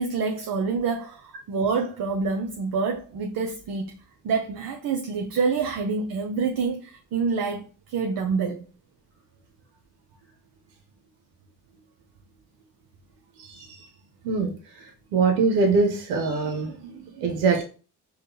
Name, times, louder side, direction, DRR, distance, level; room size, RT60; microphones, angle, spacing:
voice 1, 0.0-3.9 4.2-8.7, right 5 dB, 50° right, 0.7 m, -27 dB
voice 2, 15.1-17.6, right 4 dB, 80° right, 0.7 m, -23 dB
5.0 x 2.3 x 2.7 m
hypercardioid pair, 45°, 46 cm